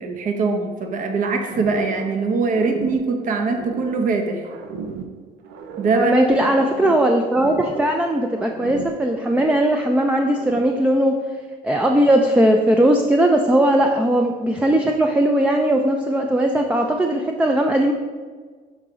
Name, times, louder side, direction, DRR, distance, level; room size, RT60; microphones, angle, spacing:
voice 1, 0.0-4.4 5.8-6.1, right 4 dB, 50° right, 5 dB, 0.8 m, -22 dB
sound 1, 1.5-2.2 2.4-4.1 4.4-6.1 6.4-8.0 8.3-9.9 10.2-10.8, right 5 dB, 90° right, 0.6 m, -35 dB
voice 2, 5.9-11.2 11.6-17.9, right 1 dB, 5° right, 3 dB, 0.4 m, -18 dB
6.3 x 4.7 x 3.8 m, 1.5 s
cardioid pair, 110°, 17 cm